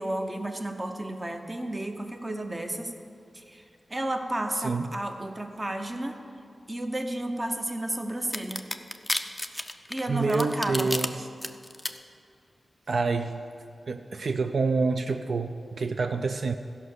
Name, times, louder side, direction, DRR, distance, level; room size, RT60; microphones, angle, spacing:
voice 1, 0.0-3.0 3.3-6.2 6.7-8.7 9.9-11.0, right 1 dB, 20° right, 5 dB, 0.8 m, -32 dB
sound 1, 8.3-11.1 11.4-11.9, left 1 dB, 10° left, 0.4 m, -30 dB
voice 2, 10.1-11.3 12.9-13.4 13.9-16.5, right 4 dB, 60° right, 7 dB, 0.4 m, -27 dB
14.5 x 5.5 x 6.4 m, 2.4 s
wide cardioid pair, 125°, 0 cm